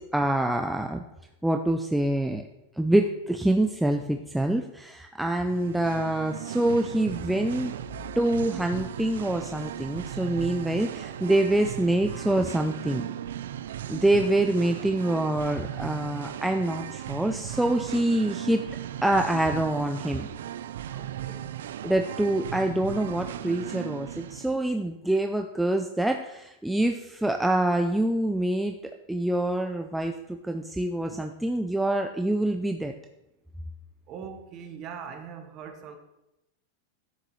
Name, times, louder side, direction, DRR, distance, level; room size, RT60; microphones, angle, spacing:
voice 1, 0.1-1.0 1.4-2.4 2.8-7.7 8.2-13.1 13.9-18.6 19.0-20.3 21.8-28.7 29.1-30.1 30.4-32.9, right 1 dB, ahead, 4 dB, 0.3 m, -25 dB
Singing, 5.4-24.5, right 11 dB, 90° right, 0.3 m, -37 dB
sound 1, 7.5-12.7, left 4 dB, 70° left, 2.1 m, -51 dB
voice 2, 20.9-21.5 34.1-36.0, right 7 dB, 30° right, 5 dB, 1.1 m, -41 dB
11.5 x 6.7 x 3.1 m, 0.90 s
supercardioid pair, 160°, 0 cm